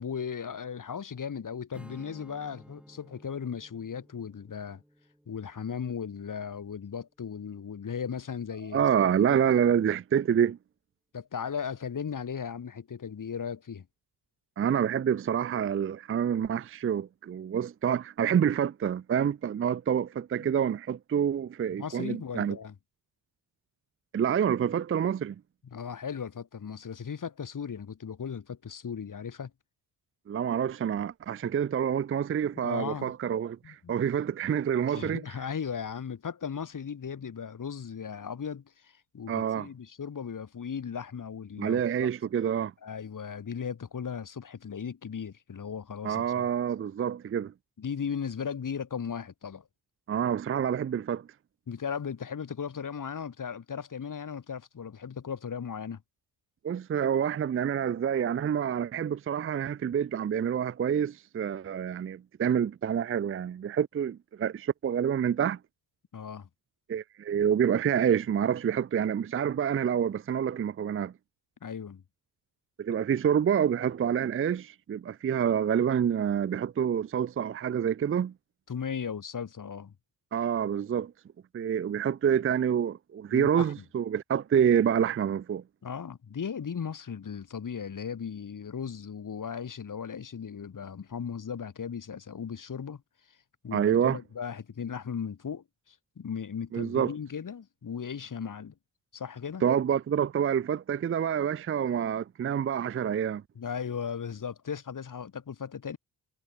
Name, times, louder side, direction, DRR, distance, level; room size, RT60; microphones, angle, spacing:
voice 1, 0.0-4.8 5.3-9.4 11.1-13.9 21.8-22.7 25.6-29.5 32.6-33.1 33.6-33.9 34.9-42.1 42.8-46.5 47.8-49.7 51.7-56.0 66.1-66.5 71.6-72.0 78.7-79.9 83.3-83.7 85.8-93.0 93.3-93.4 93.6-98.7 99.1-99.6 103.6-106.0, left 7 dB, 50° left, 3.7 m, -37 dB
Strum, 1.7-7.1, equal, 5° right, 5.1 m, -55 dB
voice 2, 8.7-10.6 14.6-22.6 24.1-25.4 30.3-35.2 39.3-39.7 41.6-42.7 46.0-47.5 50.1-51.3 56.6-65.6 66.9-71.1 72.8-78.3 80.3-81.1 81.5-85.6 93.7-94.2 96.7-97.1 99.6-103.4, right 8 dB, 30° right, 0.5 m, -27 dB
cardioid pair, 70°, 42 cm